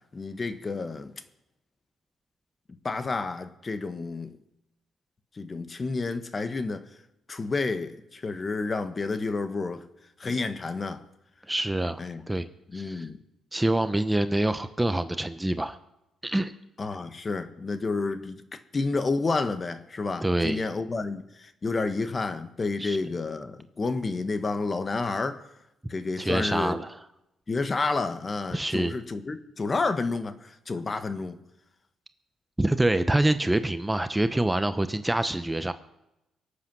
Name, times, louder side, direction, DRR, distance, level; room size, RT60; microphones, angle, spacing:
voice 1, 0.1-1.1 2.8-4.4 5.4-6.8 7.3-9.8 10.2-11.0 12.0-12.2 12.7-13.2 16.8-18.4 18.7-25.4 25.9-26.8 27.5-31.4, left 3 dB, 30° left, 1.3 m, -30 dB
voice 2, 11.5-12.5 12.7-13.1 13.5-15.8 16.2-16.5 20.2-20.7 22.8-23.0 26.2-27.0 28.5-28.9 32.6-35.7, right 1 dB, 10° right, 0.8 m, -26 dB
23.0 x 8.5 x 6.1 m
cardioid pair, 90°, 0 cm